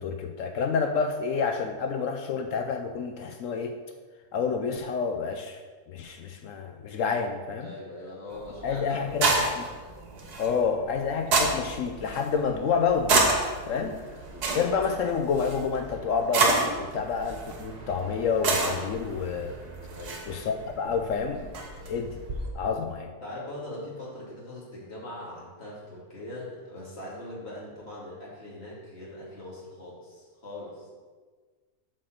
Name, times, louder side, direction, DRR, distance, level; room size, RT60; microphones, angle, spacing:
voice 1, 0.0-3.8 4.3-5.6 5.9-7.7 8.6-9.6 10.4-13.4 13.7-14.0 14.5-19.5 20.3-21.5 21.9-22.2 22.5-23.1, left 5 dB, 65° left, 5 dB, 0.8 m, -29 dB
voice 2, 7.6-9.6 10.6-10.7 13.8-14.0 14.3-14.5 19.9-20.2 23.2-30.9, left 1 dB, 40° left, -7 dB, 2.7 m, -41 dB
sound 1, 8.3-22.5, right 3 dB, 85° right, 1.7 m, -30 dB
7.4 x 4.5 x 6.4 m, 1.4 s
omnidirectional pair, 1.6 m